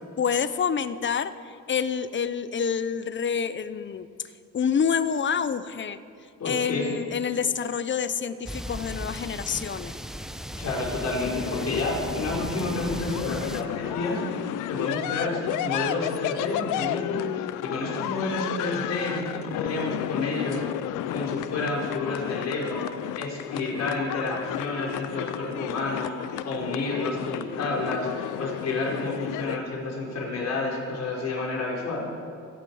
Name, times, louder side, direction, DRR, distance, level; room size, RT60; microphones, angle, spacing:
voice 1, 0.2-4.1 4.5-6.0 6.4-9.9 15.3-15.4, left 7 dB, 40° left, 14 dB, 0.8 m, -27 dB
voice 2, 6.4-6.8 10.6-20.6 21.1-22.8 23.2-32.0, left 2 dB, 60° left, -3 dB, 5.0 m, -30 dB
sound 1, 8.5-13.6, equal, ahead, 0.8 m, -36 dB
sound 2, 11.1-29.6, left 13 dB, 85° left, 0.6 m, -32 dB
28.0 x 10.5 x 4.9 m, 2.4 s
cardioid pair, 90°, 30 cm